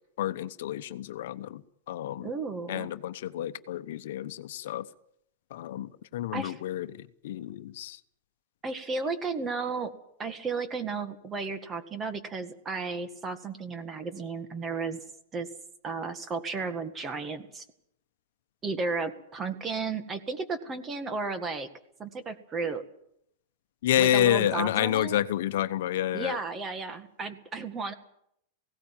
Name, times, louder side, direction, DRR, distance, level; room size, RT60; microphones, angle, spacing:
voice 1, 0.2-2.3 2.7-4.9 5.5-8.0 23.8-26.4, left 12 dB, 70° left, 11 dB, 1.0 m, -29 dB
voice 2, 2.2-2.9 6.3-6.5 8.6-9.9 10.2-15.0 15.3-15.5 15.8-17.7 18.6-21.7 22.0-22.8 24.0-25.2 26.1-27.9, right 4 dB, 20° right, 10 dB, 1.8 m, -33 dB
18.0 x 17.0 x 9.0 m, 0.74 s
supercardioid pair, 145°, 0 cm